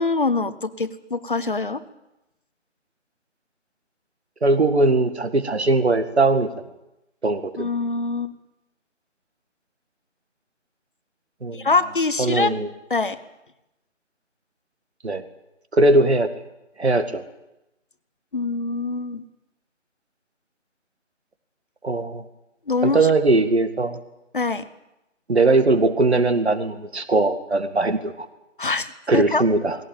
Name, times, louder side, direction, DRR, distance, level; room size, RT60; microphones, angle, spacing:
voice 1, 0.0-1.8 7.6-8.3 11.5-12.5 12.9-13.2 18.3-19.2 22.7-23.1 24.3-24.7 28.6-29.4, left 3 dB, 45° left, 13 dB, 1.1 m, -24 dB
voice 2, 4.4-6.5 7.2-7.7 11.4-11.7 12.2-12.7 15.0-15.2 15.7-16.3 16.8-17.2 21.8-22.2 22.8-24.0 25.3-28.3 29.1-29.8, right 2 dB, 60° right, 10 dB, 2.1 m, -20 dB
19.0 x 17.0 x 9.0 m, 0.92 s
figure-of-eight pair, 160°, 37 cm